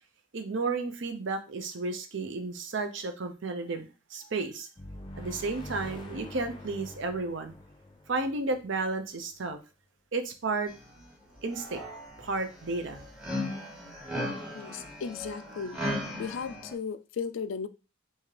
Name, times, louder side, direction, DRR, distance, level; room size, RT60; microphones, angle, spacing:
voice 1, 0.3-4.7 5.2-7.5 8.1-9.6 10.1-10.7 11.4-11.8 12.2-13.1, right 3 dB, 75° right, 0.6 m, -32 dB
sound 1, 4.8-9.4, left 1 dB, 25° left, 0.5 m, -45 dB
sound 2, 10.7-11.0 11.4-16.7, left 1 dB, 5° right, 0.9 m, -37 dB
voice 2, 14.5-15.8 16.2-17.7, left 6 dB, 85° left, 0.3 m, -35 dB
3.6 x 2.8 x 3.1 m
head